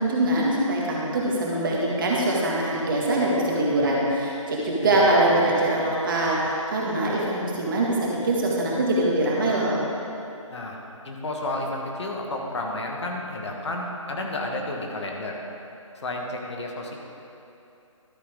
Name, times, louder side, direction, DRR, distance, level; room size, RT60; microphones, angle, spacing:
voice 1, 0.0-9.8, right 1 dB, 40° right, -4 dB, 1.9 m, -23 dB
voice 2, 4.6-5.1 10.5-10.8 11.0-15.4 15.9-17.0, left 2 dB, 55° left, 0 dB, 1.6 m, -31 dB
12.5 x 8.1 x 3.7 m, 2.8 s
figure-of-eight pair, 150°, 17 cm